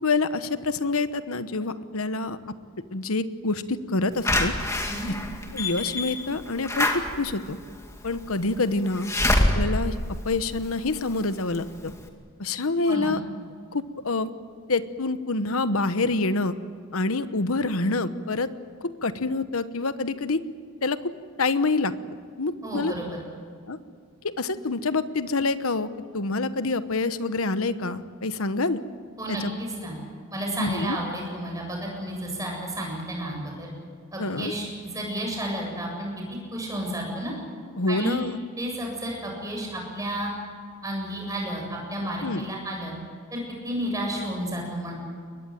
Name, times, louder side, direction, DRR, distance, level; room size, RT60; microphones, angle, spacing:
voice 1, 0.0-2.4 2.9-4.5 5.1-5.2 5.5-7.6 8.0-9.1 9.5-9.9 10.2-11.9 12.4-13.2 13.7-14.3 14.7-16.5 16.9-18.5 18.8-20.4 20.8-21.1 21.4-21.9 22.4-22.9 23.7-23.8 24.2-25.9 26.1-28.8 29.3-29.5 30.6-31.0 34.2-34.5 37.8-38.4 42.2-42.4, left 3 dB, 80° left, 12 dB, 1.1 m, -26 dB
Slam / Alarm, 4.2-11.1 11.5-11.6 11.9-12.0, left 1 dB, 15° left, 2.3 m, -26 dB
voice 2, 22.6-23.2 29.2-30.0 30.3-33.7 34.1-36.1 36.5-37.3 37.9-38.2 38.6-40.3 40.8-42.9 43.3-44.9, right 1 dB, 15° right, -1 dB, 7.9 m, -31 dB
23.0 x 20.5 x 9.2 m, 2.1 s
head